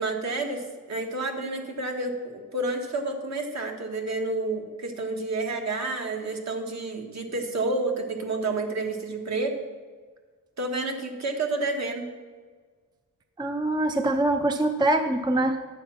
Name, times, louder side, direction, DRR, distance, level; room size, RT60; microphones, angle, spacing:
voice 1, 0.0-9.6 10.6-12.1, right 2 dB, 50° right, 3 dB, 1.7 m, -30 dB
voice 2, 13.4-15.6, right 1 dB, 15° right, 7 dB, 0.5 m, -24 dB
10.5 x 7.2 x 5.9 m, 1.5 s
cardioid pair, 115°, 34 cm